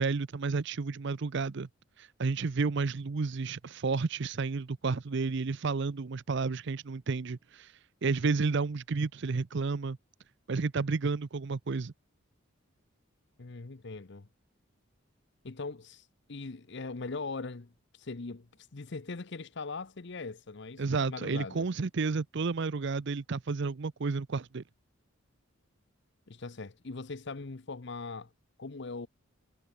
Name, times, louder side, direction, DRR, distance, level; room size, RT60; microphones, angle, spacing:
voice 1, 0.0-1.7 2.0-10.0 10.5-11.9 20.8-24.6, right 4 dB, 55° right, 0.6 m, -31 dB
voice 2, 13.4-14.3 15.4-21.7 26.3-28.3 28.6-29.1, left 3 dB, 55° left, 0.8 m, -41 dB
head